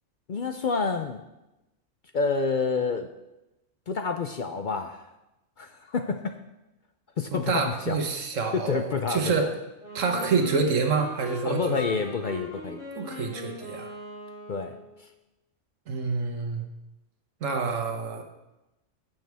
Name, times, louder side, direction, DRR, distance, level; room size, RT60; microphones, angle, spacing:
voice 1, 0.3-1.2 2.1-3.1 3.9-5.0 5.6-6.3 7.2-8.0 8.5-9.5 11.4-12.8 14.5-14.8, left 4 dB, 55° left, 6 dB, 0.6 m, -28 dB
voice 2, 7.3-9.5 9.9-12.0 13.0-13.9 15.9-16.7 17.4-18.2, right 4 dB, 85° right, 4 dB, 1.5 m, -27 dB
Wind instrument woodwind instrument, 9.8-15.0, left 2 dB, 25° left, 3.9 m, -40 dB
15.5 x 6.4 x 3.5 m, 0.96 s
omnidirectional pair, 1.3 m